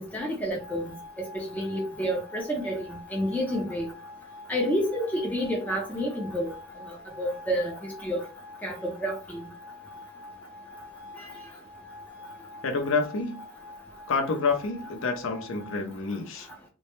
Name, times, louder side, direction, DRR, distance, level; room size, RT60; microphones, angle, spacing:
voice 1, 0.1-0.8 1.3-3.9 4.5-6.5 7.2-8.3 8.6-9.4 11.2-11.3, equal, 10° left, 0.4 m, -29 dB
sound 1, 0.6-15.8, left 3 dB, 60° right, 0.7 m, -46 dB
voice 2, 12.6-13.4 14.1-16.5, left 4 dB, 70° left, 0.5 m, -28 dB
2.2 x 2.0 x 2.9 m
head